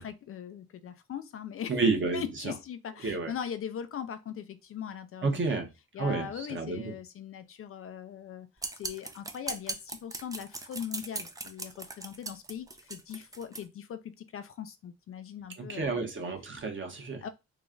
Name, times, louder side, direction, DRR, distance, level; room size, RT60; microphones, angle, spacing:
voice 1, 0.0-1.8 2.1-5.6 5.9-8.5 8.8-14.0 14.3-16.1 17.2-17.3, left 8 dB, 50° left, 0.4 m, -40 dB
voice 2, 1.7-2.5 3.0-3.3 5.2-5.7 6.0-6.9 15.7-17.2, right 4 dB, 40° right, 1.1 m, -30 dB
sound 1, 8.6-13.6, right 2 dB, 10° right, 0.4 m, -39 dB
3.1 x 2.4 x 3.7 m
cardioid pair, 90°, 30 cm